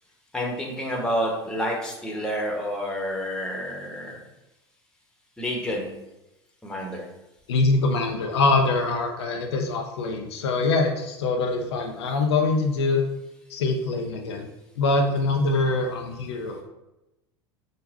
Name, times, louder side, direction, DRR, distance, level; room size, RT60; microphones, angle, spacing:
voice 1, 0.3-4.2 5.4-5.9 6.6-7.1, equal, 5° left, -2 dB, 1.0 m, -29 dB
voice 2, 7.5-13.0 13.5-14.5 14.8-16.6, left 3 dB, 70° left, 3 dB, 0.5 m, -24 dB
3.8 x 2.2 x 4.0 m, 0.94 s
figure-of-eight pair, 80°, 15 cm